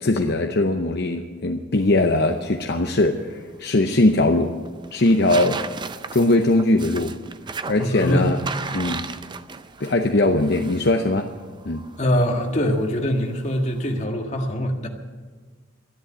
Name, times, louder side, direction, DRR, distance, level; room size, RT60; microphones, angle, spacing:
voice 1, 0.0-4.5 4.9-5.6 6.1-7.2 7.7-8.4 8.7-9.1 9.8-11.3 11.6-11.9, left 2 dB, 55° left, 4 dB, 0.8 m, -20 dB
sound 1, 1.8-14.0, right 4 dB, 25° right, 0.5 m, -37 dB
voice 2, 7.8-8.3 12.0-14.9, equal, 35° left, 2 dB, 1.8 m, -23 dB
12.5 x 11.0 x 9.7 m, 1.5 s
head